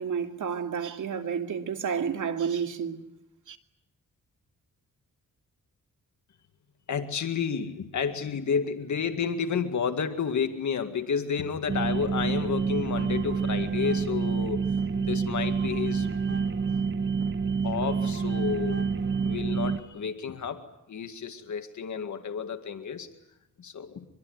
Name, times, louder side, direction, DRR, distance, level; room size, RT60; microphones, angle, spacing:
voice 1, 0.0-3.0 3.5-3.6, right 7 dB, 65° right, 2.5 m, -30 dB
voice 2, 6.9-16.4 17.6-18.9 19.2-23.1 23.6-24.1, left 6 dB, 65° left, 2.0 m, -31 dB
sound 1, 11.7-19.8, right 5 dB, 35° right, 1.2 m, -28 dB
25.0 x 22.5 x 9.6 m
cardioid pair, 110°, 32 cm